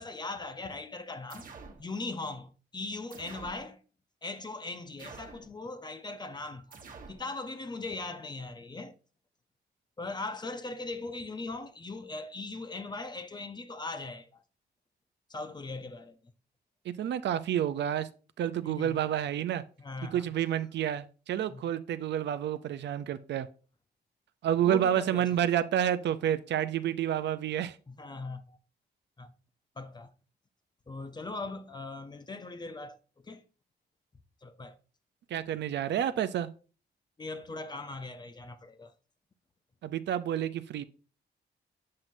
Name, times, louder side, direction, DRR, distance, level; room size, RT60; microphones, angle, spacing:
voice 1, 0.0-1.4 1.8-3.8 4.2-6.8 7.1-9.0 10.0-14.4 15.3-16.2 18.6-19.0 19.8-20.2 21.5-21.6 24.6-25.4 27.9-28.6 29.2-29.3 29.8-30.1 30.9-33.0 33.2-33.4 34.4-34.8 37.2-38.9, left 3 dB, 25° left, 0.7 m, -39 dB
sound 1, 1.3-1.8 3.1-3.6 5.0-5.5 6.7-7.2, right 4 dB, 50° right, 1.2 m, -47 dB
voice 2, 16.9-18.1 18.4-19.6 20.1-23.5 24.4-27.8 35.3-36.5 39.8-40.8, right 10 dB, 80° right, 0.5 m, -29 dB
7.5 x 5.9 x 2.6 m
cardioid pair, 100°, 18 cm